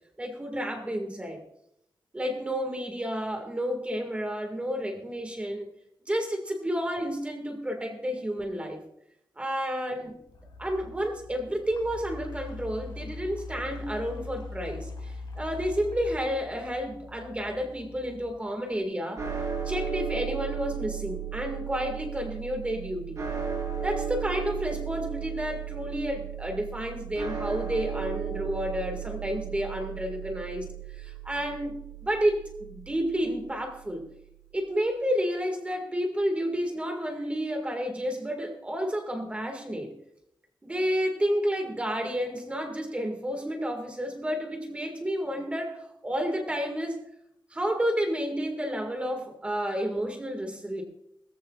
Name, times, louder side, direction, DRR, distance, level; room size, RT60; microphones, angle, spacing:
voice 1, 0.2-1.4 2.1-5.7 6.1-8.8 9.4-10.1 10.6-19.3 19.7-23.2 23.8-34.1 34.5-39.9 40.6-47.0 47.5-50.8, equal, 15° right, 3 dB, 1.9 m, -31 dB
sound 1, 10.2-18.8, left 3 dB, 85° left, 3.3 m, -42 dB
sound 2, 19.2-33.4, right 8 dB, 40° right, 5.3 m, -35 dB
21.5 x 14.5 x 2.4 m, 0.77 s
wide cardioid pair, 160°, 8 cm